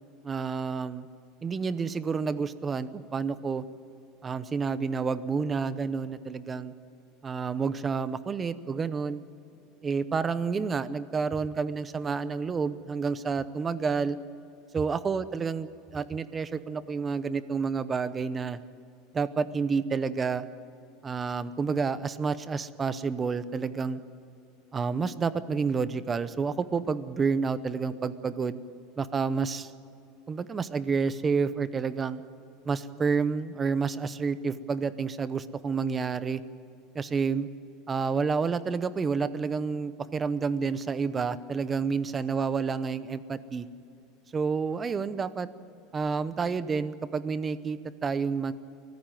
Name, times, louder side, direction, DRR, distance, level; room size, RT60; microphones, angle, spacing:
voice 1, 0.2-1.1 1.4-3.6 4.2-6.7 7.2-9.2 9.8-14.2 14.7-18.6 19.1-20.4 21.0-24.0 24.7-28.6 29.0-29.7 30.3-32.2 32.6-36.4 36.9-37.5 37.9-43.7 44.3-45.5 45.9-48.5, right 5 dB, 20° right, 15 dB, 0.8 m, -29 dB
23.5 x 15.0 x 9.1 m, 2.6 s
supercardioid pair, 145°, 0 cm